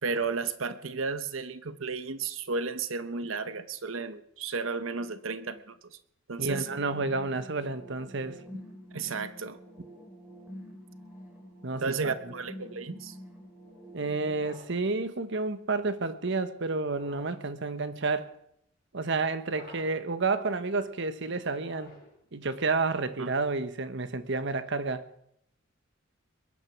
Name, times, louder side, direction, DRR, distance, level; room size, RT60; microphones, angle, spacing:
voice 1, 0.0-6.0 6.3-6.7 8.9-9.6 11.8-13.2 23.2-23.3, right 4 dB, 80° right, 13 dB, 0.9 m, -33 dB
voice 2, 6.4-8.4 11.6-12.2 13.9-18.3 18.9-22.0 22.3-25.1, right 3 dB, 65° right, 12 dB, 1.1 m, -30 dB
sound 1, 6.5-14.5, equal, 10° right, 3.6 m, -47 dB
sound 2, 14.3-14.9 16.9-17.5 19.4-20.1 21.5-22.3, left 2 dB, 50° left, 4.5 m, -51 dB
21.5 x 9.9 x 6.0 m, 0.74 s
head